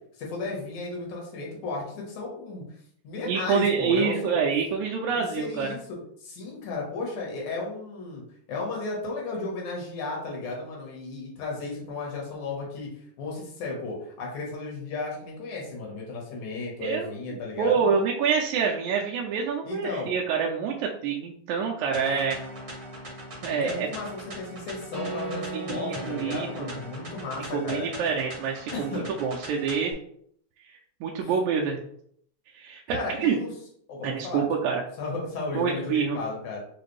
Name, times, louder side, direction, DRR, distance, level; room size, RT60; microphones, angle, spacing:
voice 1, 0.2-2.6 3.0-4.4 5.1-8.2 8.5-12.9 13.2-17.8 19.6-20.2 23.5-27.9 28.7-29.1 31.2-31.3 32.9-33.5 33.9-34.4 35.0-36.6, left 3 dB, 85° left, -2 dB, 2.7 m, -34 dB
voice 2, 3.3-5.7 16.8-22.4 23.4-23.9 25.5-26.5 27.5-28.9 29.2-29.9 31.0-31.8 32.5-33.4 34.0-34.8 35.5-36.2, right 6 dB, 85° right, -1 dB, 1.9 m, -27 dB
sound 1, 21.9-29.9, right 1 dB, 40° right, 1.0 m, -39 dB
5.7 x 2.6 x 3.1 m, 0.66 s
omnidirectional pair, 3.3 m